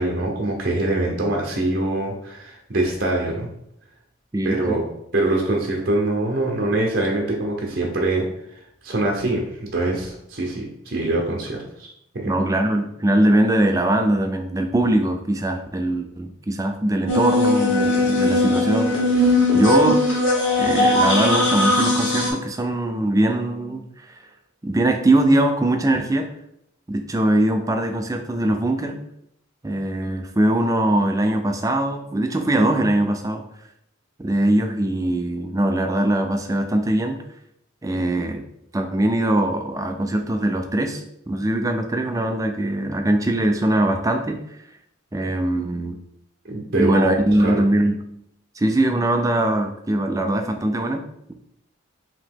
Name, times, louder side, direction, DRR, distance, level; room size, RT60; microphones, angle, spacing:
voice 1, 0.0-3.5 4.4-4.8 5.1-11.9 12.1-12.3 46.4-47.1 47.4-47.7, right 2 dB, 45° right, -1 dB, 0.7 m, -24 dB
voice 2, 4.3-4.8 12.3-19.3 19.5-20.0 20.6-24.2 24.6-26.3 26.9-29.0 29.6-33.4 34.2-37.2 37.8-38.4 38.7-44.4 45.1-46.0 46.8-48.0 48.6-51.3, right 1 dB, 15° right, 5 dB, 0.3 m, -21 dB
sound 1, 17.1-22.3, left 1 dB, 70° left, 1.2 m, -19 dB
5.0 x 2.9 x 3.6 m, 0.76 s
head